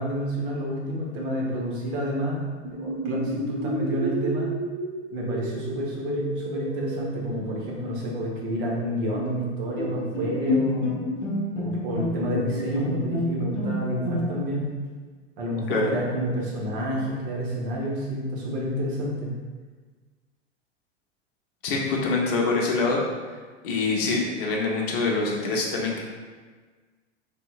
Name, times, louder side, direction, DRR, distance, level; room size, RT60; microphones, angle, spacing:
voice 1, 0.0-4.5 5.1-10.9 11.6-14.7 15.4-19.3, equal, 45° right, -3 dB, 0.9 m, -29 dB
sound 1, 2.6-8.0, right 2 dB, 20° right, 0.4 m, -32 dB
Bowed string instrument, 9.8-14.6, left 2 dB, 80° left, 0.7 m, -28 dB
voice 2, 21.6-23.0 23.6-26.0, left 3 dB, 50° left, -1 dB, 0.7 m, -25 dB
3.4 x 2.7 x 2.3 m, 1.4 s
figure-of-eight pair, 90°, 36 cm